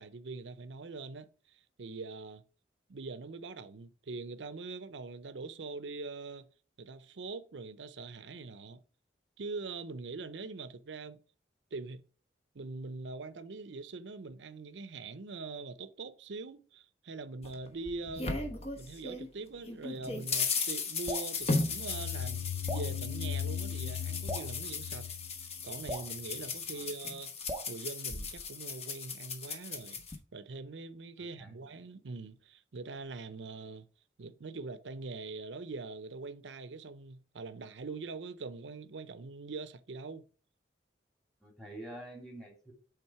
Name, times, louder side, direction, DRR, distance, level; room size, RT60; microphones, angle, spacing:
voice 1, 0.0-2.4 2.9-6.5 6.8-8.8 9.4-11.2 11.7-12.0 12.5-18.3 18.8-25.1 25.6-27.3 27.7-33.9 34.2-40.2, right 3 dB, 85° right, 0.6 m, -43 dB
sound 1, 17.4-19.3 19.6-30.2, left 4 dB, 35° left, 1.0 m, -37 dB
Drip, 21.1-21.3 22.7-22.9 24.3-24.5 25.9-26.1 27.5-27.7, right 1 dB, 25° right, 0.7 m, -39 dB
sound 2, 21.5-26.1, left 9 dB, 70° left, 0.4 m, -38 dB
voice 2, 31.2-31.7 41.4-42.7, right 1 dB, 5° left, 2.1 m, -48 dB
8.6 x 3.5 x 4.6 m
head